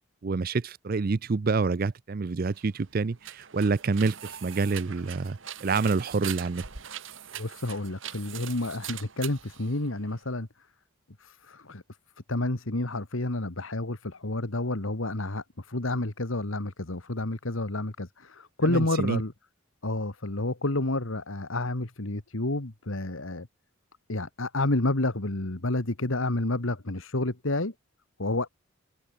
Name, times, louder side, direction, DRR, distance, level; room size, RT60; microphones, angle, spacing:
voice 1, 0.2-6.6 18.6-19.2, right 4 dB, 45° right, 0.5 m, -27 dB
sound 1, 2.5-10.3, right 10 dB, 65° right, 1.7 m, -42 dB
voice 2, 7.4-10.5 11.2-11.8 12.3-19.3 19.8-23.5 24.1-27.7 28.2-28.5, left 2 dB, 70° left, 1.9 m, -30 dB
head